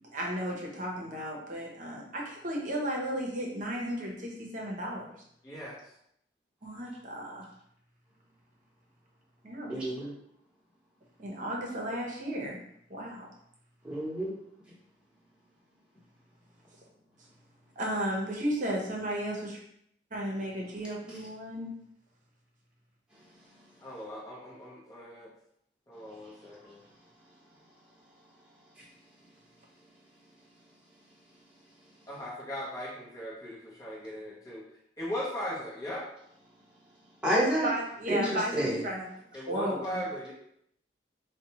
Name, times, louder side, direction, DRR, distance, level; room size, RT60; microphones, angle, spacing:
voice 1, 0.1-5.1 6.6-7.5 9.4-9.8 11.2-12.6 12.9-13.3 17.8-19.6 20.1-21.7 37.6-39.1 39.5-40.0, equal, 45° right, -2 dB, 0.8 m, -34 dB
voice 2, 5.4-5.8 23.8-25.3 25.9-26.8 32.1-34.6 35.0-36.0 39.3-40.3, equal, 20° left, -5 dB, 0.8 m, -38 dB
voice 3, 9.7-10.1 13.8-14.3 37.2-37.7 38.1-38.8, equal, 5° right, -8 dB, 1.1 m, -28 dB
4.1 x 2.2 x 2.9 m, 0.72 s
head